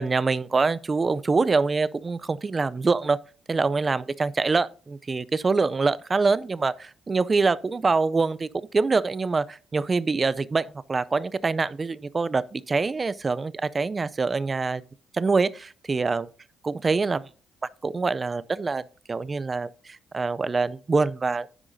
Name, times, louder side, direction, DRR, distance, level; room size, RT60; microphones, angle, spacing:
voice 1, 0.0-3.2 3.5-14.8 15.1-16.3 16.6-17.2 17.8-18.8 19.1-21.5, right 4 dB, 30° right, 0.4 m, -25 dB
9.9 x 9.7 x 2.6 m
cardioid pair, 90°, 0 cm